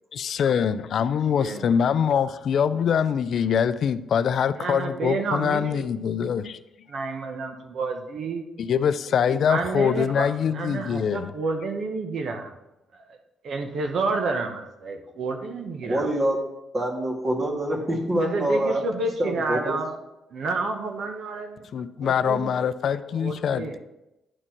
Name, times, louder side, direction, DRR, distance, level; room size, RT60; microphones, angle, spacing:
voice 1, 0.1-6.6 8.6-11.3 21.7-23.8, left 7 dB, 60° left, 0.3 m, -24 dB
voice 2, 1.4-1.8 4.6-5.8 6.9-8.5 9.5-12.5 12.9-13.2 13.4-16.1 18.2-20.0 20.3-21.7 22.0-22.6 23.1-23.8, right 3 dB, 60° right, 0.9 m, -30 dB
voice 3, 15.8-16.4 16.7-18.8 19.2-19.8, right 1 dB, 35° right, 1.9 m, -25 dB
9.8 x 4.3 x 4.4 m
cardioid pair, 90°, 0 cm